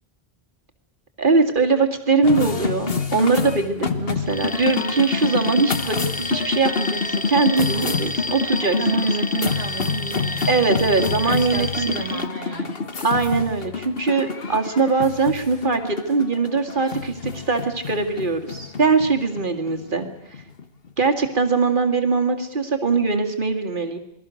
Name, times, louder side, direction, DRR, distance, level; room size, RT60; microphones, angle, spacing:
voice 1, 1.2-8.8 10.5-12.2 13.0-20.1 21.0-24.0, right 4 dB, 55° right, 4 dB, 2.4 m, -21 dB
sound 1, 2.2-20.9, left 5 dB, 65° left, 1.6 m, -27 dB
Alarm, 4.3-12.3, left 1 dB, 10° left, 0.9 m, -31 dB
voice 2, 8.8-10.7 11.2-12.9, right 5 dB, 75° right, 3 dB, 1.8 m, -30 dB
28.0 x 21.0 x 6.4 m, 0.73 s
omnidirectional pair, 1.0 m